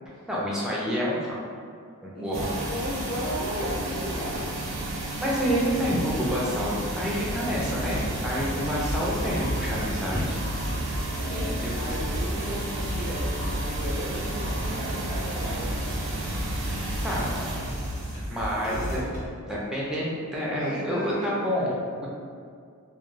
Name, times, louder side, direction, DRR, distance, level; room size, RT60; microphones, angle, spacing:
voice 1, 0.3-1.4 2.0-2.5 5.2-10.4 11.5-11.7 16.2-16.4 17.0-17.3 18.3-19.0 19.5-22.1, equal, 5° right, -6 dB, 0.4 m, -28 dB
voice 2, 2.1-4.5 11.1-15.7 18.6-19.2 20.5-21.4, equal, 45° left, -7 dB, 0.6 m, -35 dB
sound 1, 2.3-19.0, right 2 dB, 60° right, 0.5 m, -33 dB
sound 2, 7.2-19.3, equal, 80° left, 1.2 m, -34 dB
2.2 x 2.1 x 3.1 m, 2.2 s
head